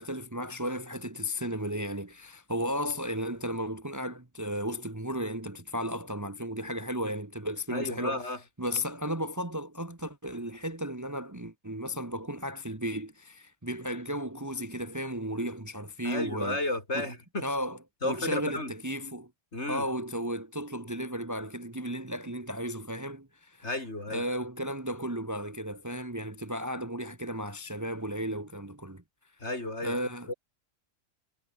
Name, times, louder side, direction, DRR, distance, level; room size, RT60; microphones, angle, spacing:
voice 1, 0.0-8.3 8.6-16.6 16.9-17.1 17.4-17.8 18.0-19.3 19.7-23.7 24.1-29.0 29.8-30.3, equal, 15° right, 1.3 m, -34 dB
voice 2, 7.7-8.4 16.0-17.4 18.0-18.7 19.5-19.9 23.6-24.2 29.4-30.0 30.3-30.4, left 2 dB, 55° left, 5.5 m, -33 dB
omnidirectional pair, 1.3 m